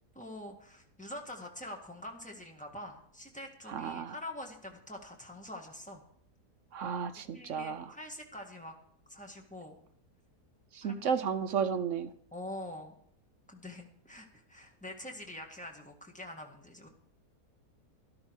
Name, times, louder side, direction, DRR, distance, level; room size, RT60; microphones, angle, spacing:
voice 1, 0.1-6.0 7.3-8.8 9.1-9.8 10.8-11.1 12.3-13.0 13.5-16.9, left 1 dB, 5° left, 1.7 m, -45 dB
voice 2, 3.7-4.1 6.7-7.9 10.7-12.1, right 6 dB, 60° right, 0.9 m, -33 dB
12.5 x 12.0 x 4.8 m
omnidirectional pair, 1.7 m